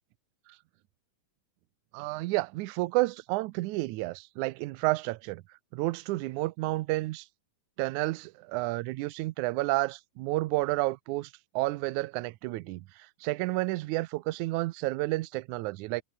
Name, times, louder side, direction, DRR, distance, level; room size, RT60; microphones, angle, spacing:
voice 1, 1.9-5.4 5.7-7.3 7.8-16.0, right 20 dB, 85° right, 1.8 m, -31 dB
omnidirectional pair, 4.1 m